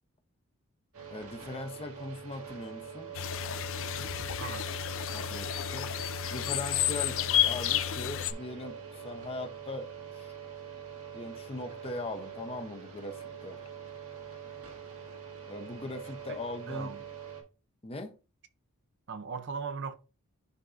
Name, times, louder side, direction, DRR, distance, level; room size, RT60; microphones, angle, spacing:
sound 1, 0.9-17.4, right 8 dB, 85° right, 2.1 m, -44 dB
voice 1, 1.1-3.1 5.1-5.9 6.3-10.4 11.1-13.6 15.5-16.9 17.8-18.2, left 2 dB, 25° left, 0.7 m, -40 dB
sound 2, 3.1-8.3, left 11 dB, 60° left, 0.5 m, -31 dB
voice 2, 4.4-4.8 16.7-17.1 19.1-19.9, right 5 dB, 55° right, 0.6 m, -38 dB
11.0 x 3.7 x 2.5 m
head